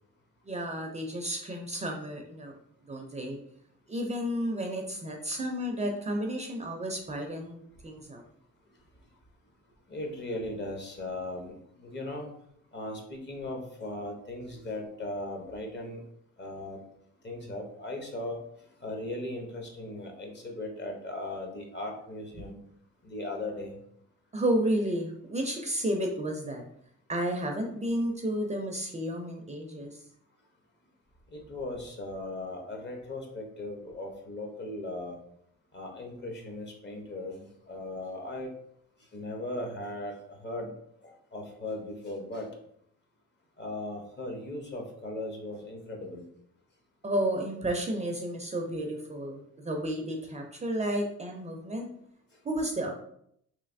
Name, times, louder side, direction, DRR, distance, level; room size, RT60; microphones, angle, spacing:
voice 1, 0.5-2.6 2.9-3.4 3.9-8.2 24.3-26.6 27.1-30.0 47.0-51.9 52.4-52.9, right 1 dB, 25° right, 2 dB, 0.4 m, -32 dB
voice 2, 9.9-12.3 12.7-16.0 16.4-16.8 17.2-18.4 18.8-22.6 23.0-23.8 31.3-35.2 35.7-38.5 39.1-40.7 41.0-42.5 43.6-46.3, left 2 dB, 35° left, 2 dB, 0.8 m, -38 dB
3.2 x 2.7 x 2.6 m, 0.70 s
cardioid pair, 90°, 30 cm